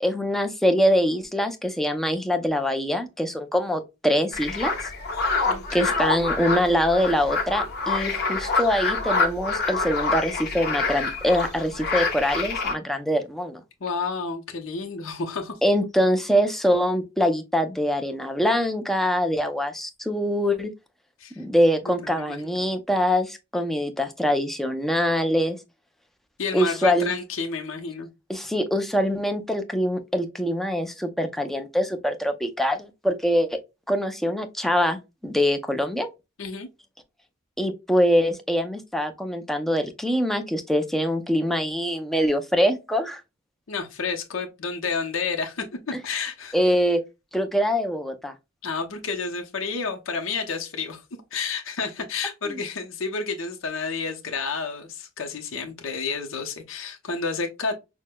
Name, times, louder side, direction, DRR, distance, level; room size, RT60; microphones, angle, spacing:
voice 1, 0.0-4.7 5.7-13.6 15.6-20.7 21.4-25.6 26.5-27.1 28.3-33.6 33.9-36.1 37.6-43.2 46.5-47.0 47.3-48.3 52.5-52.6, equal, ahead, 0.5 m, -24 dB
sound 1, 4.3-12.7, left 3 dB, 50° left, 1.1 m, -26 dB
voice 2, 5.4-5.9 13.8-15.6 21.2-21.4 21.8-22.5 26.4-28.1 36.4-36.7 43.7-46.6 48.6-51.0 51.3-57.7, left 4 dB, 70° left, 0.7 m, -30 dB
6.1 x 2.1 x 2.2 m
head